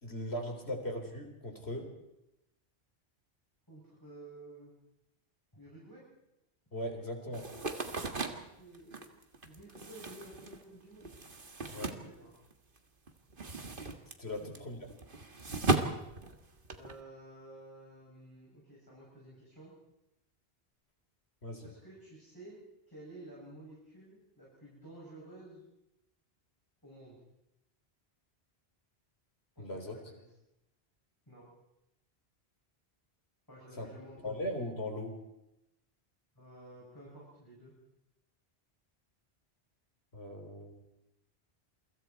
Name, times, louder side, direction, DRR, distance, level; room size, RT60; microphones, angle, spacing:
voice 1, 0.0-1.9 6.7-7.5 11.7-11.9 14.2-14.8 21.4-21.7 29.6-30.0 33.7-33.9 34.2-35.2 40.1-40.9, left 1 dB, 75° left, 4 dB, 4.3 m, -39 dB
voice 2, 3.7-4.7 5.5-6.0 8.2-9.1 9.5-11.1 11.7-12.3 14.6-14.7 16.8-19.7 21.6-22.6 22.9-25.6 26.8-27.2 29.6-30.2 31.3-31.5 33.5-34.6 36.3-37.7, right 1 dB, 20° left, -6 dB, 7.7 m, -52 dB
sound 1, 7.3-12.8 13.1-17.0, right 2 dB, 55° right, 2.0 m, -37 dB
28.5 x 24.0 x 4.6 m, 0.88 s
omnidirectional pair, 1.1 m